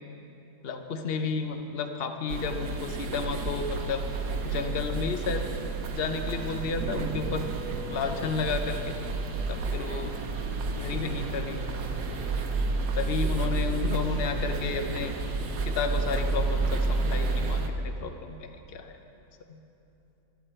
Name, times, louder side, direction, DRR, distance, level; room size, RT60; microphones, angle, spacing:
voice 1, 0.6-4.0 4.4-5.4 5.9-7.5 7.9-8.9 9.5-10.1 10.7-11.6 12.9-15.1 15.6-19.0 19.5-19.6, left 5 dB, 45° left, 6 dB, 1.0 m, -32 dB
sound 1, 2.3-17.7, right 3 dB, 85° right, 1.6 m, -30 dB
19.5 x 12.5 x 4.4 m, 2.9 s
omnidirectional pair, 1.7 m